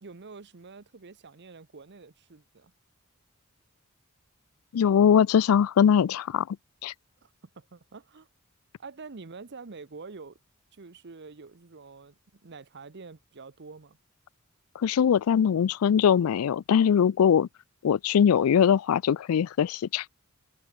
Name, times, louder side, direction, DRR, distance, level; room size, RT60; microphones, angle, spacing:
voice 1, 0.0-2.7 7.2-7.3 7.6-8.3 8.8-10.4 10.7-14.0, right 4 dB, 55° right, 0.9 m, -46 dB
voice 2, 4.7-6.6 6.8-6.9 14.8-17.5 17.8-20.1, left 8 dB, 85° left, 0.4 m, -22 dB
head